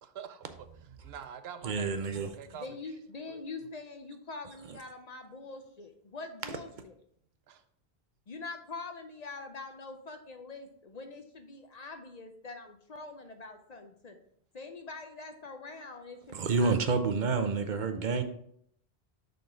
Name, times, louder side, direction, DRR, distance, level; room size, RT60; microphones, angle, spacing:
voice 1, 0.0-2.7 3.3-3.5 7.5-7.6 15.8-15.9, right 8 dB, 85° right, 0.8 m, -46 dB
voice 2, 1.6-2.3 16.3-18.2, right 4 dB, 55° right, 0.7 m, -28 dB
voice 3, 2.5-7.0 8.3-14.2 14.5-17.1, left 3 dB, 50° left, 0.6 m, -44 dB
6.7 x 3.9 x 3.8 m
omnidirectional pair, 1.0 m